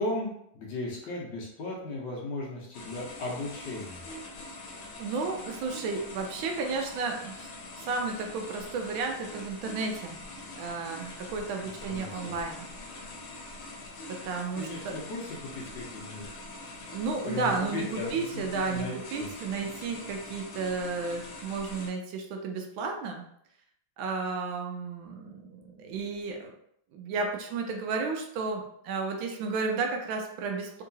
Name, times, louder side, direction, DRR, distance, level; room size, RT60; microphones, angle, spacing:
voice 1, 0.0-4.1 11.8-12.3 14.5-16.4 17.2-19.3, left 2 dB, 65° left, -3 dB, 1.3 m, -36 dB
sound 1, 2.7-21.9, left 2 dB, 85° left, 1.6 m, -44 dB
voice 2, 5.0-7.5 7.8-10.2 10.6-12.7 14.1-15.0 16.9-23.2 24.0-26.5 26.9-30.8, right 4 dB, 80° right, 3 dB, 1.3 m, -33 dB
3.7 x 2.8 x 2.7 m, 0.71 s
omnidirectional pair, 2.3 m